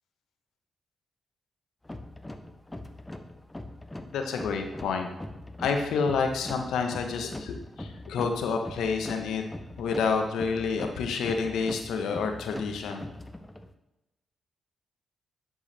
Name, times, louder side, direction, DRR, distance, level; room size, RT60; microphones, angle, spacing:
sound 1, 1.8-13.7, left 1 dB, 15° left, 0.8 m, -42 dB
voice 1, 4.1-5.1 5.6-9.4 9.8-13.1, left 5 dB, 85° left, 4 dB, 0.9 m, -29 dB
10.0 x 4.7 x 3.3 m, 0.98 s
supercardioid pair, 55°, 0 cm